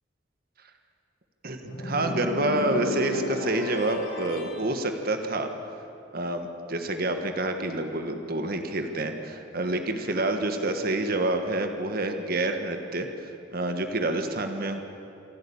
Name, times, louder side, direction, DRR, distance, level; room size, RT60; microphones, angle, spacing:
voice 1, 1.4-5.5 6.1-13.1 13.5-14.8, right 2 dB, 55° right, 6 dB, 1.5 m, -28 dB
sound 1, 1.6-4.6, equal, 75° left, 3.5 m, -33 dB
26.5 x 12.0 x 8.7 m, 2.7 s
head